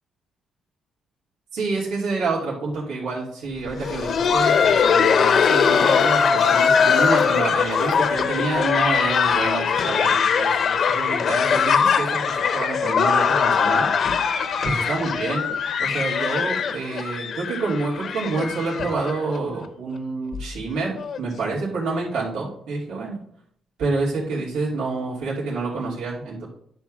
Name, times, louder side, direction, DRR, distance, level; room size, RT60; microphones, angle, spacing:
voice 1, 1.5-12.2 12.5-13.9 14.6-15.4 15.8-23.2 23.8-26.5, right 3 dB, 85° right, -7 dB, 2.9 m, -28 dB
Laughter, 3.7-19.4 19.6-19.7 20.3-20.4 21.0-21.2 22.3-22.4, left 6 dB, 60° left, 0.8 m, -21 dB
10.5 x 3.6 x 6.2 m, 0.68 s
cardioid pair, 90°, 0 cm